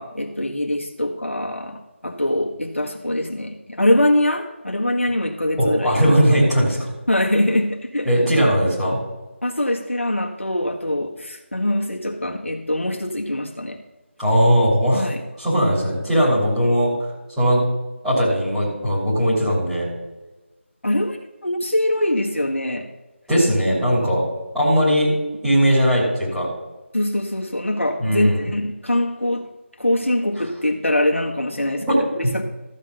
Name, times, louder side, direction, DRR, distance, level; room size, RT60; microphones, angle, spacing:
voice 1, 0.0-6.1 7.1-8.1 9.4-13.8 14.9-15.2 20.8-21.2 21.4-22.9 26.9-29.5 29.8-32.4, left 1 dB, 70° left, 0 dB, 1.6 m, -23 dB
voice 2, 5.6-6.9 8.0-9.0 14.2-15.1 15.4-16.9 17.4-17.6 18.0-19.9 23.3-24.2 24.5-25.1 25.4-26.5 28.0-28.5 31.9-32.0, equal, 5° right, -15 dB, 3.1 m, -18 dB
14.0 x 5.2 x 6.9 m, 1.1 s
figure-of-eight pair, 165°, 7 cm